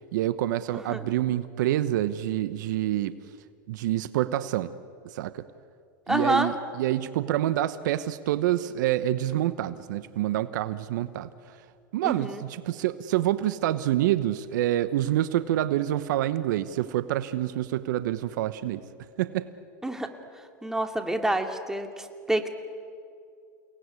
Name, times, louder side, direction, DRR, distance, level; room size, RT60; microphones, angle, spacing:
voice 1, 0.1-3.1 3.7-4.7 5.1-5.4 6.1-11.3 11.9-18.8 19.2-19.5, right 13 dB, 70° right, 14 dB, 1.0 m, -27 dB
voice 2, 0.7-1.1 6.1-6.5 12.0-12.4 19.8-20.1 20.6-22.5, right 1 dB, 5° right, 6 dB, 2.5 m, -28 dB
29.5 x 19.0 x 9.7 m, 2.4 s
hypercardioid pair, 105°, 10 cm